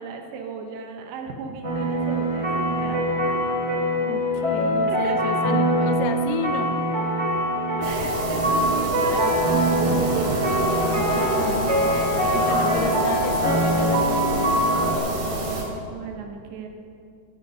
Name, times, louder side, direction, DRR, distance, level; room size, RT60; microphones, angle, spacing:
voice 1, 0.0-3.1 4.9-5.3 7.8-10.4 12.2-12.4 15.4-16.7, right 5 dB, 85° right, 3 dB, 3.4 m, -35 dB
sound 1, 1.6-14.9, right 1 dB, 10° right, 1.6 m, -23 dB
voice 2, 4.0-6.8 7.8-8.1 10.1-10.2 11.1-15.0, left 7 dB, 80° left, 7 dB, 2.8 m, -32 dB
sound 2, 7.8-15.6, right 1 dB, 50° right, 3.8 m, -27 dB
12.0 x 10.5 x 9.1 m, 2.4 s
omnidirectional pair, 4.9 m